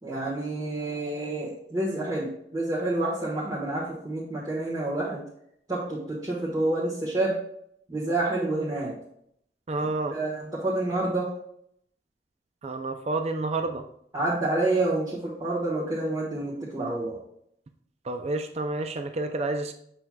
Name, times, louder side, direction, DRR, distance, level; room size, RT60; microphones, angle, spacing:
voice 1, 0.0-5.2 5.7-7.4 7.9-8.9 9.8-11.3 14.1-17.2, right 2 dB, 20° right, -6 dB, 1.4 m, -28 dB
voice 2, 9.7-10.2 12.6-13.8 18.1-19.7, right 2 dB, 35° right, 7 dB, 0.4 m, -29 dB
7.7 x 6.1 x 2.3 m, 0.71 s
head